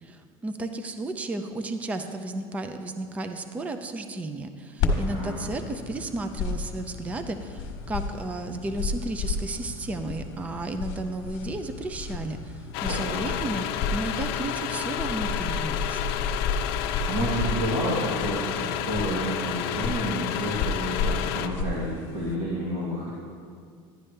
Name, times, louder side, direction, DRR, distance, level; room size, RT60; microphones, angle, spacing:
voice 1, 0.0-13.7 13.9-16.0, right 2 dB, 10° right, 8 dB, 0.4 m, -33 dB
sound 1, 4.8-22.4, left 4 dB, 50° left, 1.4 m, -33 dB
sound 2, 12.7-21.5, left 11 dB, 70° left, 0.5 m, -31 dB
voice 2, 12.8-13.2 17.1-23.1, right 1 dB, 50° right, -7 dB, 2.1 m, -30 dB
11.0 x 11.0 x 3.3 m, 2.1 s
cardioid pair, 165°, 13 cm